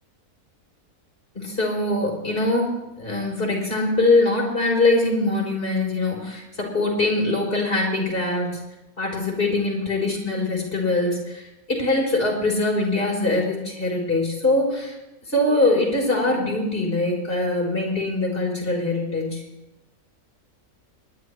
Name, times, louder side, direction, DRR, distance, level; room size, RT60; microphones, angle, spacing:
voice 1, 1.3-2.7 3.0-8.5 9.0-14.9 15.3-19.4, left 2 dB, 35° left, -2 dB, 4.2 m, -23 dB
27.0 x 11.0 x 3.2 m, 0.95 s
omnidirectional pair, 1.6 m